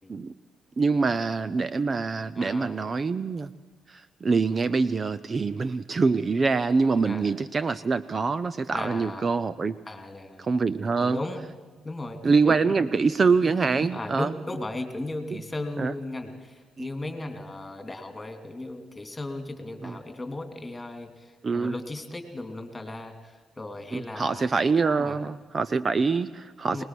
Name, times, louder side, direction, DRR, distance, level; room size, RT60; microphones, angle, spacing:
voice 1, 0.8-3.5 3.9-9.8 10.4-11.2 12.2-14.3 15.8-15.9 16.8-16.9 19.8-20.0 21.4-21.7 23.9-26.8, right 4 dB, 35° right, 16 dB, 0.6 m, -25 dB
voice 2, 2.3-2.9 7.0-7.3 8.7-9.3 9.9-10.5 11.0-11.5 11.8-12.9 13.8-24.5 25.0-25.2 26.7-26.8, left 2 dB, 15° left, 7 dB, 2.8 m, -36 dB
22.5 x 19.5 x 6.2 m, 1.3 s
cardioid pair, 90°, 0 cm